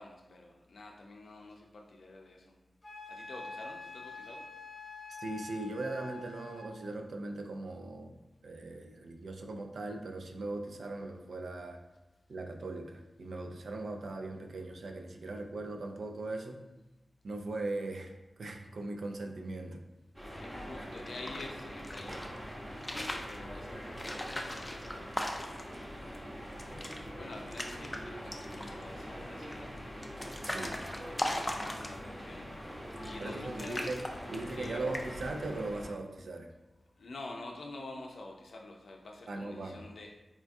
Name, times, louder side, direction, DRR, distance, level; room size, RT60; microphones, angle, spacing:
voice 1, 0.0-2.6 3.1-4.5 20.4-25.3 25.8-26.7 27.2-30.1 30.4-34.9 36.9-40.2, left 2 dB, 85° left, 1 dB, 0.4 m, -49 dB
Wind instrument woodwind instrument, 2.8-6.7, left 3 dB, 35° left, 0.7 m, -46 dB
voice 2, 5.1-8.1 8.4-11.8 12.3-16.6 17.2-18.1 18.4-19.8 30.4-30.8 33.2-34.0 34.3-36.5 39.3-39.8, right 2 dB, 80° right, 4 dB, 0.3 m, -39 dB
sound 1, 20.1-35.9, equal, 15° right, 0.7 m, -44 dB
sound 2, 20.9-22.3 22.7-23.4 23.9-25.8 26.1-26.2 26.5-27.0 27.3-28.0 28.3-28.8 29.5-32.2 32.9-33.3 33.6-34.7 34.9-35.3, left 1 dB, 15° left, 0.3 m, -38 dB
4.2 x 2.3 x 2.5 m, 1.0 s
wide cardioid pair, 120°, 0 cm